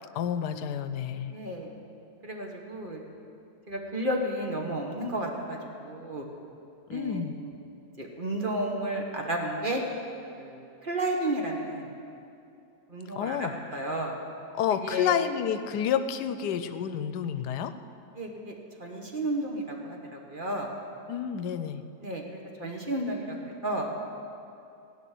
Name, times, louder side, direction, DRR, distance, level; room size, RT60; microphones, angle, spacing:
voice 1, 0.1-1.3 6.9-7.4 13.2-13.5 14.5-17.7 21.1-21.8, left 8 dB, 90° left, 11 dB, 1.2 m, -29 dB
voice 2, 1.3-1.7 2.2-3.0 3.7-6.3 6.9-7.6 8.0-9.8 10.4-11.9 12.9-14.1 14.8-15.2 18.1-18.5 18.8-20.7 22.0-23.9, right 1 dB, 35° right, 0 dB, 1.4 m, -32 dB
17.0 x 5.8 x 9.2 m, 2.6 s
omnidirectional pair, 1.7 m